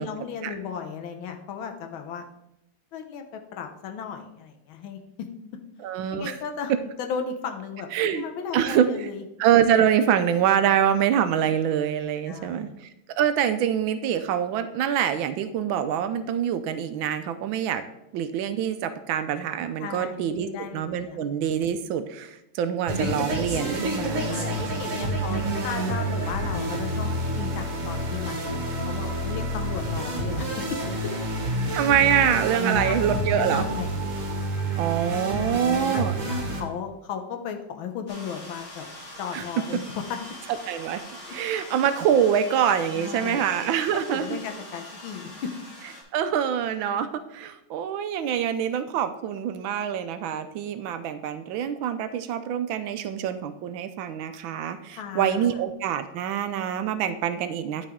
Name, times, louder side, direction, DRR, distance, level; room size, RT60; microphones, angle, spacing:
voice 1, 0.0-2.2 2.9-5.3 6.1-6.7 7.0-9.2 12.3-12.7 19.8-21.2 24.3-31.1 32.6-33.9 35.1-38.9 39.2-40.0 42.9-43.5 44.1-45.5 54.9-55.5, left 7 dB, 85° left, 5 dB, 1.7 m, -35 dB
voice 2, 5.8-6.4 7.9-8.2 8.5-9.1 9.4-17.8 18.1-24.7 25.3-25.6 31.7-33.7 34.8-36.2 39.3-39.4 40.7-41.0 41.3-44.3 46.1-57.9, right 9 dB, 80° right, 10 dB, 1.4 m, -25 dB
sound 1, 22.9-36.6, right 1 dB, 45° right, 1.6 m, -28 dB
sound 2, 38.1-46.0, left 1 dB, 35° left, 2.4 m, -43 dB
11.0 x 5.1 x 3.6 m, 0.83 s
omnidirectional pair, 2.2 m